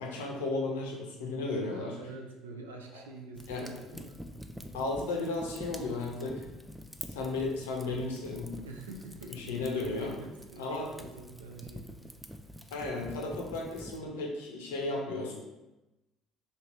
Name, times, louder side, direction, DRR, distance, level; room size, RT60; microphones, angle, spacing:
voice 1, 0.0-1.9 3.5-3.7 4.7-6.4 7.1-8.6 9.3-10.1 10.6-10.9 12.7-15.3, left 3 dB, 75° left, 0 dB, 0.6 m, -34 dB
voice 2, 1.6-4.3 8.6-12.1, right 3 dB, 80° right, 2 dB, 0.4 m, -46 dB
Fire, 3.3-14.0, equal, ahead, 0.3 m, -47 dB
2.9 x 2.8 x 3.2 m, 1.0 s
figure-of-eight pair, 55°, 0 cm